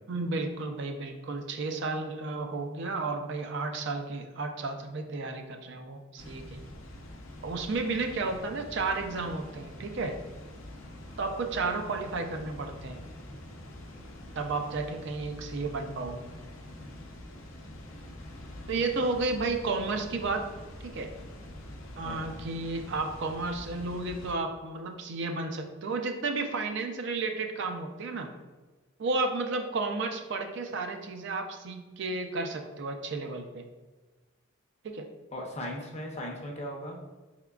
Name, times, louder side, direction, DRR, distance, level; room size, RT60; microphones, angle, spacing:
voice 1, 0.1-6.6 7.4-10.2 11.2-13.0 14.4-16.3 18.7-20.5 20.8-21.1 22.0-28.3 29.0-33.6 34.8-35.1, right 3 dB, 60° right, 5 dB, 0.4 m, -32 dB
Water, 6.2-24.3, left 1 dB, 80° left, 0.7 m, -45 dB
voice 2, 22.0-22.4 35.3-37.0, equal, 30° left, 0 dB, 0.6 m, -38 dB
4.5 x 3.6 x 2.3 m, 1.2 s
head